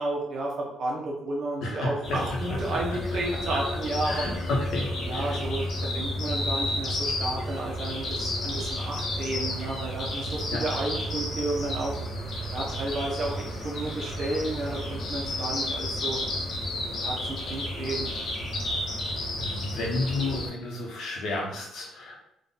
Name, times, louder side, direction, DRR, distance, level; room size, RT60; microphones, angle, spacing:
voice 1, 0.0-4.3 5.0-11.9 12.5-16.2 17.0-18.1, right 2 dB, 45° right, -2 dB, 0.9 m, -32 dB
voice 2, 1.6-2.2 2.5-2.6 4.0-5.4 10.5-10.6 19.4-22.2, left 2 dB, 60° left, -1 dB, 1.1 m, -31 dB
sound 1, 2.0-20.5, left 1 dB, 40° left, 1.0 m, -31 dB
3.9 x 2.5 x 3.9 m, 0.77 s
cardioid pair, 180°, 0 cm